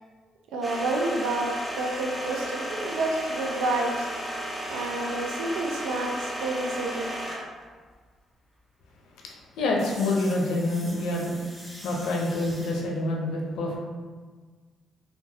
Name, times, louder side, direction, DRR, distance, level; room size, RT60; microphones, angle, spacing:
voice 1, 0.5-4.1 4.7-7.1, right 2 dB, 90° right, 0 dB, 0.4 m, -29 dB
sound 1, 0.6-7.6 9.8-12.8, right 1 dB, 5° right, 0.6 m, -35 dB
voice 2, 9.2-11.3 11.8-13.8, left 2 dB, 85° left, -1 dB, 0.5 m, -27 dB
3.0 x 2.2 x 2.7 m, 1.5 s
cardioid pair, 90°, 0 cm